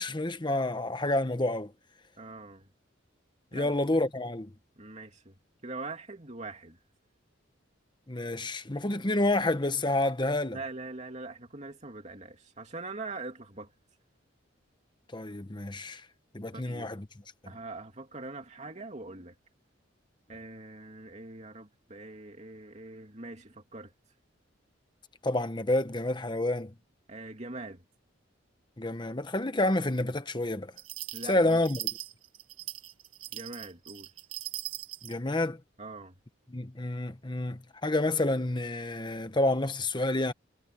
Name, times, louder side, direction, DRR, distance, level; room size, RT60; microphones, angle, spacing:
voice 1, 0.0-1.7 3.5-4.5 8.1-10.6 15.1-16.0 16.3-17.1 25.2-26.7 28.8-30.7 31.2-31.9 35.0-35.6 36.5-40.3, left 2 dB, 25° left, 1.1 m, -29 dB
voice 2, 2.2-2.7 3.5-3.7 4.8-5.3 5.6-6.8 10.5-13.7 16.5-17.0 17.5-19.3 20.3-23.9 27.1-27.8 31.1-31.6 33.3-34.1 35.8-36.1, right 3 dB, 35° right, 2.9 m, -42 dB
sound 1, 30.8-35.2, right 15 dB, 90° right, 1.7 m, -40 dB
head